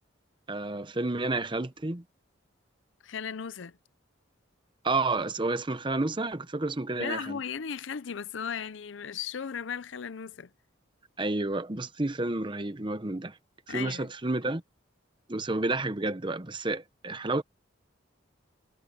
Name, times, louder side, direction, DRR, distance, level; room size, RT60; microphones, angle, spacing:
voice 1, 0.5-2.0 4.8-7.4 11.2-13.4 13.7-14.6 15.3-17.4, right 2 dB, 25° right, 0.9 m, -30 dB
voice 2, 3.0-3.8 7.0-10.5 13.7-14.1, left 7 dB, 70° left, 0.6 m, -36 dB
head